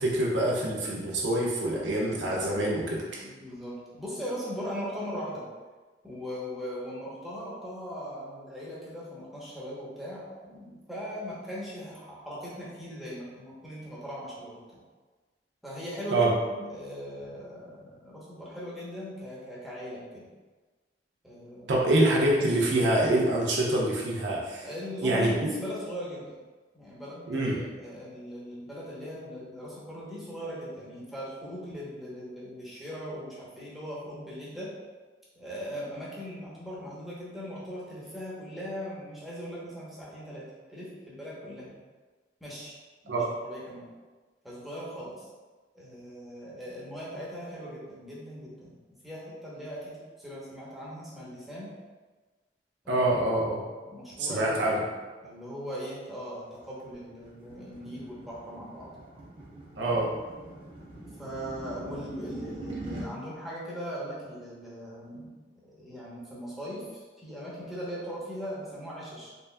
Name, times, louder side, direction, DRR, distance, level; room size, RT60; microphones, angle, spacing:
voice 1, 0.0-3.2 16.1-16.3 21.7-24.7 25.0-25.3 27.3-27.6 43.1-43.2 52.9-53.6 54.2-54.8 59.8-60.1, right 1 dB, 85° right, -3 dB, 0.7 m, -25 dB
voice 2, 3.2-5.4 6.0-14.8 15.6-20.3 21.2-21.7 24.6-26.3 26.7-34.7 35.4-40.4 40.7-41.8 42.4-42.8 43.0-43.9 44.4-45.3 45.7-48.8 49.0-51.7 52.8-53.1 53.5-54.9 55.2-58.9 61.2-65.3 65.7-69.3, equal, ahead, -8 dB, 0.9 m, -39 dB
sound 1, 56.6-63.1, right 2 dB, 30° right, 0.8 m, -43 dB
3.9 x 3.3 x 2.2 m, 1.3 s
head